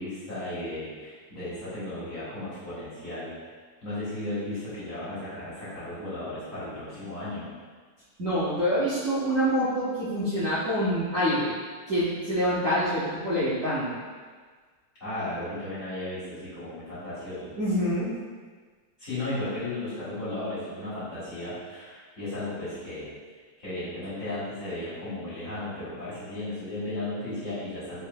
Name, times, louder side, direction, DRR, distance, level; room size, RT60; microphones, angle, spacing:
voice 1, 0.0-3.5 3.8-7.5 15.0-17.5 19.0-23.1 23.6-28.0, left 1 dB, 40° left, -12 dB, 1.9 m, -35 dB
voice 2, 8.2-11.5 11.9-14.0 17.6-18.1, equal, 50° right, -13 dB, 1.1 m, -26 dB
4.4 x 4.0 x 2.2 m, 1.5 s
omnidirectional pair, 2.3 m